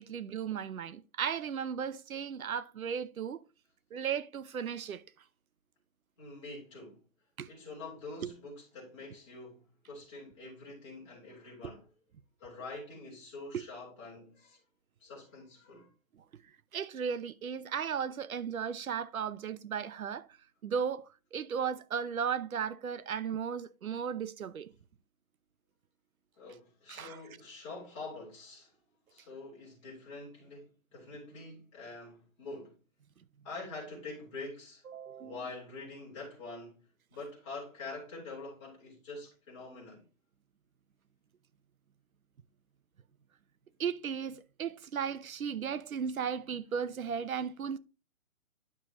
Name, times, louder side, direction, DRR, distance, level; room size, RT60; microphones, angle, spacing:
voice 1, 0.0-3.4 3.9-5.0 7.4-7.5 8.2-8.3 13.5-13.6 16.7-20.3 20.6-24.7 26.9-27.2 34.9-35.4 43.8-47.8, right 7 dB, 85° right, 0.8 m, -35 dB
voice 2, 6.2-7.0 7.5-11.9 12.4-14.6 15.0-15.9 26.4-28.7 29.1-32.8 33.4-34.8 35.2-36.8 37.1-40.0, left 3 dB, 20° left, 3.8 m, -45 dB
10.0 x 6.5 x 3.0 m
hypercardioid pair, 175°, 41 cm